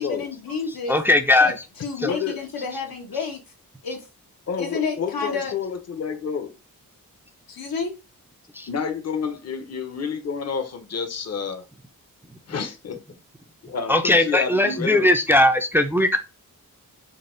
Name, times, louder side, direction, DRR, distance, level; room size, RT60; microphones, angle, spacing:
voice 1, 0.0-1.0 1.4-3.4 3.8-4.1 4.6-5.5 7.5-7.9, left 5 dB, 85° left, 1.1 m, -30 dB
voice 2, 0.9-1.5 2.0-2.1 8.5-8.7 13.9-16.2, left 1 dB, 5° right, 0.4 m, -19 dB
voice 3, 2.0-2.4 4.5-6.5 8.7-11.6 12.5-13.0 13.7-15.1, left 6 dB, 45° left, 0.7 m, -29 dB
3.9 x 2.2 x 3.7 m
wide cardioid pair, 90°, 35 cm